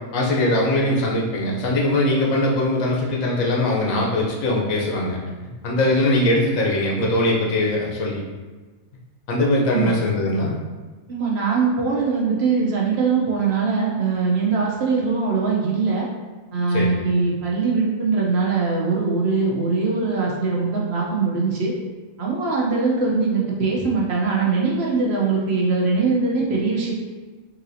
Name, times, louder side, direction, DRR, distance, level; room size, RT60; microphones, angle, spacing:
voice 1, 0.1-5.2 5.6-8.2 9.3-10.6 16.7-17.0, left 1 dB, 75° left, -2 dB, 1.2 m, -21 dB
voice 2, 11.1-16.1 16.5-21.7 22.2-26.9, right 4 dB, 60° right, -3 dB, 0.8 m, -21 dB
3.9 x 2.7 x 2.6 m, 1.3 s
omnidirectional pair, 1.4 m